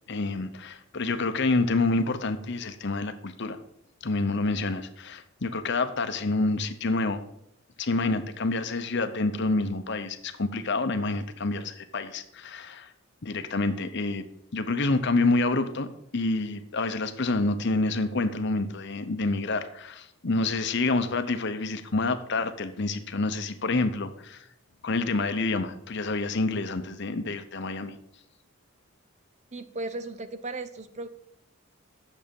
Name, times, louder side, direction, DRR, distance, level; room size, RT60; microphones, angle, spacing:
voice 1, 0.1-3.6 4.0-7.2 7.8-12.9 13.2-14.3 14.5-24.5 24.8-28.0, left 3 dB, 50° left, 10 dB, 0.7 m, -28 dB
voice 2, 29.5-31.1, right 2 dB, 30° right, 11 dB, 0.5 m, -36 dB
8.8 x 7.1 x 5.3 m, 0.77 s
head